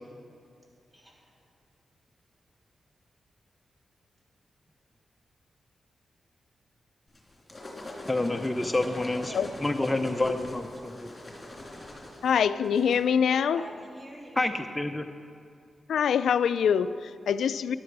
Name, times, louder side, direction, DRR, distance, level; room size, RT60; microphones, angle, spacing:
voice 1, 0.9-1.3 8.8-9.5 9.8-10.3 13.6-14.4, equal, 15° right, -3 dB, 3.4 m, -45 dB
sound 1, 7.1-13.0, left 1 dB, 30° left, 3.1 m, -42 dB
voice 2, 8.1-9.3 9.6-11.1 14.4-15.1, left 2 dB, 15° left, 5 dB, 0.6 m, -28 dB
voice 3, 12.2-13.6 15.9-17.8, left 7 dB, 85° left, 15 dB, 0.3 m, -24 dB
13.0 x 11.0 x 4.7 m, 2.4 s
cardioid pair, 65°, 0 cm